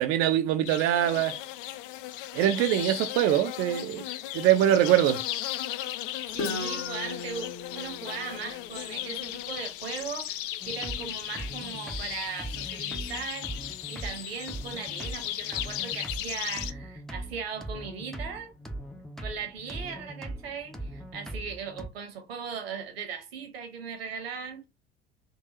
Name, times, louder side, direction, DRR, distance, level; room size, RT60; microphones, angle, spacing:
voice 1, 0.0-1.4 2.3-4.0 4.3-5.2, right 12 dB, 45° right, 0.5 m, -23 dB
sound 1, 0.6-16.7, left 14 dB, 60° left, 0.4 m, -36 dB
Guitar, 6.3-10.1, left 3 dB, 45° left, 0.9 m, -38 dB
voice 2, 6.3-18.5 19.2-24.7, right 6 dB, 75° right, 1.1 m, -38 dB
sound 2, 10.6-21.9, right 1 dB, ahead, 0.6 m, -40 dB
3.8 x 2.4 x 2.8 m
figure-of-eight pair, 65°, 31 cm